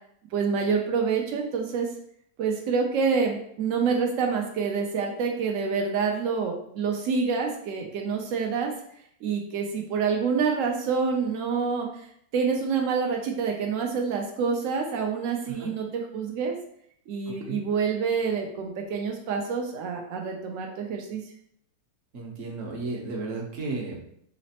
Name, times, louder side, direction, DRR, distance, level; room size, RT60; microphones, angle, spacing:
voice 1, 0.3-1.9 2.4-8.7 9.2-16.5 17.1-21.2, right 5 dB, 85° right, 1 dB, 0.7 m, -27 dB
voice 2, 22.1-24.0, right 3 dB, 55° right, -1 dB, 1.0 m, -33 dB
4.1 x 3.0 x 2.8 m, 0.69 s
omnidirectional pair, 2.0 m